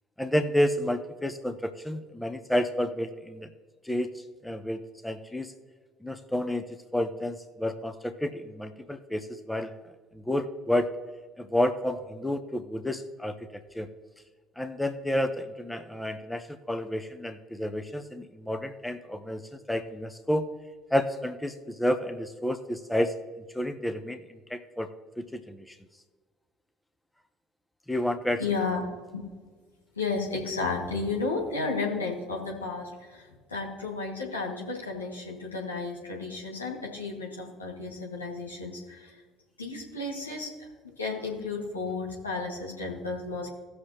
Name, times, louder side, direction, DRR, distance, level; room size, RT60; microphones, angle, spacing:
voice 1, 0.2-3.5 3.8-4.1 4.4-5.5 6.0-9.7 10.1-10.9 11.4-13.9 14.6-20.5 20.9-23.1 23.5-24.2 24.5-24.9 25.2-25.7 27.9-28.4, left 1 dB, 5° left, 9 dB, 0.9 m, -30 dB
voice 2, 28.4-28.8 29.1-29.2 30.0-39.1 39.6-43.5, left 3 dB, 85° left, -3 dB, 2.0 m, -33 dB
18.0 x 6.6 x 2.9 m, 1.5 s
figure-of-eight pair, 55°, 0 cm